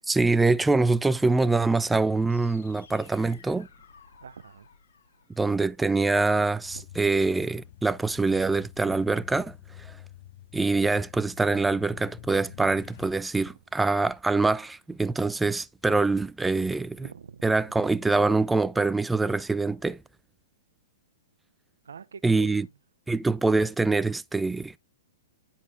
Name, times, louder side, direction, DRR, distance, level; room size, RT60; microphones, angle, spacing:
voice 1, 0.1-3.7 5.4-10.0 10.5-17.1 17.4-20.0 22.2-22.7 23.1-24.8, right 3 dB, 5° right, 0.4 m, -24 dB
sound 1, 2.2-6.2, left 5 dB, 70° left, 3.7 m, -55 dB
voice 2, 4.2-4.7 6.7-6.8 16.5-16.7 17.0-18.2 21.8-22.6, right 6 dB, 80° right, 0.7 m, -45 dB
sound 2, 6.6-13.1, left 12 dB, 55° left, 1.4 m, -47 dB
10.0 x 4.3 x 3.7 m
hypercardioid pair, 125°, 0 cm